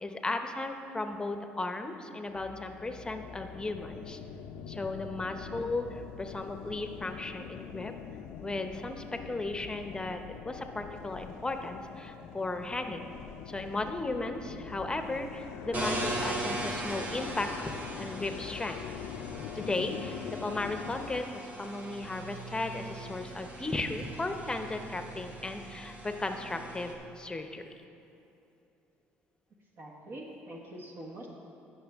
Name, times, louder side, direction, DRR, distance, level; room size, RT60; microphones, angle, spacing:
voice 1, 0.0-4.2 4.7-7.9 8.4-13.1 13.5-17.7 18.0-18.8 19.5-27.7, left 2 dB, 15° left, 6 dB, 0.8 m, -35 dB
sound 1, 2.3-21.2, left 8 dB, 80° left, 0.4 m, -44 dB
sound 2, 15.7-26.9, right 1 dB, 30° right, 1.5 m, -39 dB
voice 2, 29.8-31.3, right 1 dB, 55° right, -1 dB, 1.4 m, -44 dB
16.0 x 5.8 x 3.6 m, 2.8 s
supercardioid pair, 85°, 5 cm